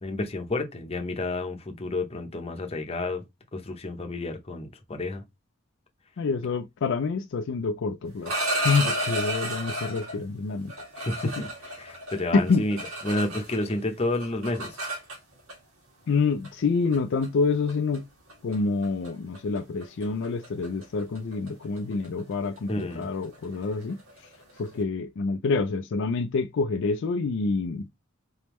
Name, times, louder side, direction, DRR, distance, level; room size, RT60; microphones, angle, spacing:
voice 1, 0.0-3.2 3.5-5.2 11.0-11.5 11.8-12.8 13.0-14.8 22.7-23.1, left 2 dB, 30° left, 0.8 m, -30 dB
voice 2, 6.2-8.3 8.6-10.7 12.3-12.6 16.1-18.0 18.4-24.0 24.6-27.8, left 4 dB, 60° left, 0.4 m, -27 dB
sound 1, 8.1-10.2 10.7-13.7 14.0-15.5 16.4-16.6 16.9-17.3 17.7-18.0 18.3-18.5 18.8-19.1 19.3-24.7, right 1 dB, 80° right, 1.7 m, -33 dB
4.1 x 3.5 x 3.0 m
head